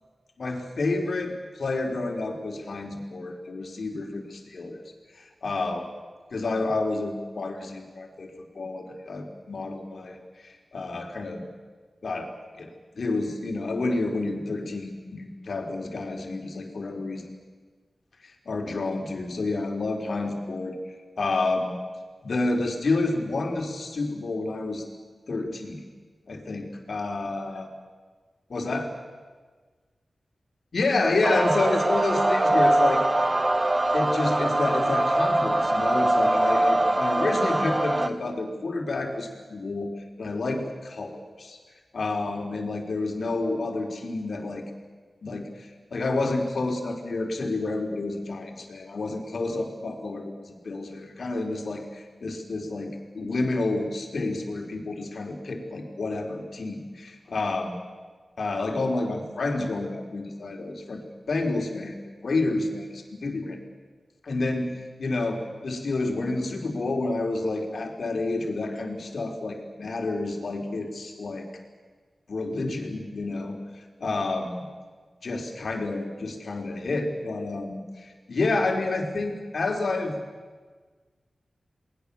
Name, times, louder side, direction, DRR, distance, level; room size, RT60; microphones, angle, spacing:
voice 1, 0.4-4.8 5.1-5.9 6.3-11.4 12.0-12.3 12.6-12.7 12.9-17.3 18.2-20.8 21.2-21.8 22.2-24.8 25.3-25.8 26.3-27.7 28.5-28.9 30.7-33.0 33.9-39.9 40.2-41.6 41.9-44.6 45.2-57.8 58.4-61.0 61.3-63.6 64.2-64.7 65.0-71.5 72.3-74.6 75.2-80.2, left 2 dB, 70° left, 2 dB, 4.0 m, -29 dB
sound 1, 31.2-38.1, right 1 dB, 30° right, 1.5 m, -22 dB
29.0 x 20.5 x 7.0 m, 1.4 s
cardioid pair, 40°, 0 cm